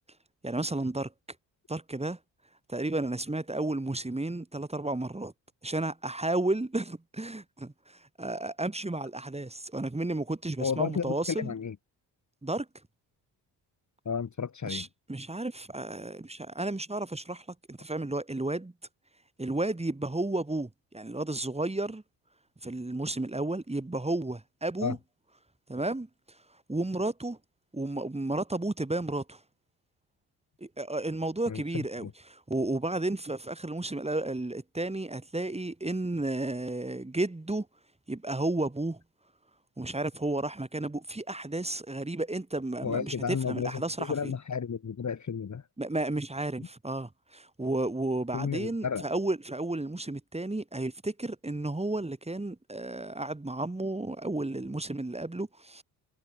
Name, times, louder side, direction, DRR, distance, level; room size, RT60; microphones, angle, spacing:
voice 1, 0.4-1.1 1.7-2.2 2.7-5.3 5.6-11.5 12.4-12.7 14.6-18.7 19.4-22.0 22.6-25.0 25.7-26.4 26.7-27.4 27.7-29.4 30.6-37.7 38.1-39.0 39.8-44.3 45.8-55.8, right 2 dB, 15° right, 2.8 m, -32 dB
voice 2, 10.6-11.8 14.1-14.9 24.8-25.0 31.5-31.6 32.0-32.1 42.8-43.7 44.0-45.6 48.3-49.0, left 6 dB, 40° left, 2.1 m, -32 dB
supercardioid pair, 55°, 45 cm